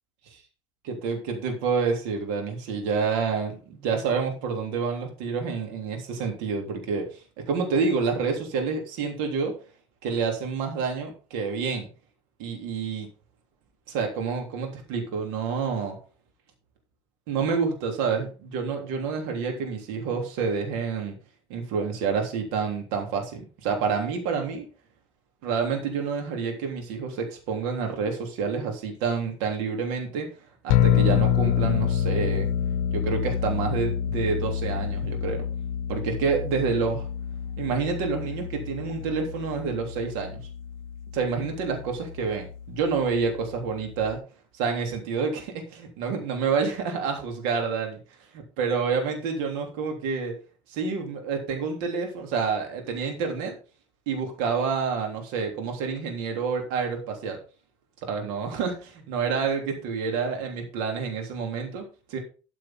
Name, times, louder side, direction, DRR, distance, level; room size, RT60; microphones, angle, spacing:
voice 1, 0.8-7.2 7.5-9.5 10.0-11.9 12.4-13.1 13.9-16.0 17.3-21.2 21.5-24.7 25.4-30.3 30.6-32.5 32.9-35.5 35.9-37.1 37.6-40.4 41.1-44.2 44.5-48.0 48.3-50.4 50.7-53.6 54.1-57.4 58.0-62.2, right 5 dB, 60° right, 3 dB, 3.5 m, -28 dB
sound 1, 30.7-44.1, left 9 dB, 55° left, 0.8 m, -28 dB
13.0 x 7.6 x 3.9 m, 0.35 s
figure-of-eight pair, 65°, 17 cm